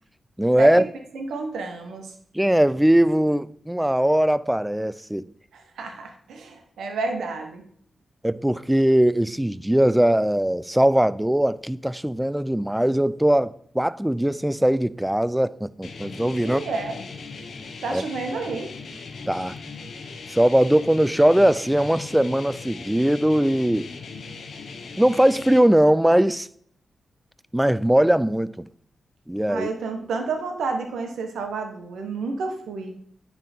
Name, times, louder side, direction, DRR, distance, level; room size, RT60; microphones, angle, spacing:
voice 1, 0.4-0.8 2.3-5.3 8.2-16.6 17.9-18.0 19.3-19.6 20.3-23.9 25.0-26.5 27.5-28.7 29.3-29.7, right 1 dB, 10° right, 0.3 m, -20 dB
voice 2, 1.1-2.1 5.5-7.6 16.4-17.0 17.8-18.7 29.5-32.9, right 4 dB, 85° right, 1.0 m, -30 dB
sound 1, 15.8-25.6, left 4 dB, 75° left, 0.8 m, -39 dB
9.9 x 3.5 x 4.3 m
cardioid pair, 55°, 0 cm